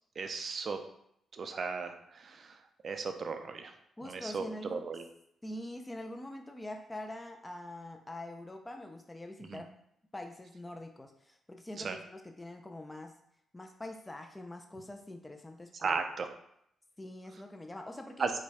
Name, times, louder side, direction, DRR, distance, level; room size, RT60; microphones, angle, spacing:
voice 1, 0.2-0.8 1.3-2.6 2.8-3.7 4.0-4.4 4.7-5.0 9.4-9.6 11.8-12.0 15.7-16.3 18.2-18.3, right 5 dB, 50° right, 7 dB, 0.5 m, -36 dB
voice 2, 4.0-4.9 5.4-9.7 10.1-13.1 13.5-16.0 17.0-18.3, left 1 dB, 15° left, 4 dB, 0.5 m, -44 dB
5.0 x 2.3 x 4.1 m, 0.73 s
cardioid pair, 90°, 0 cm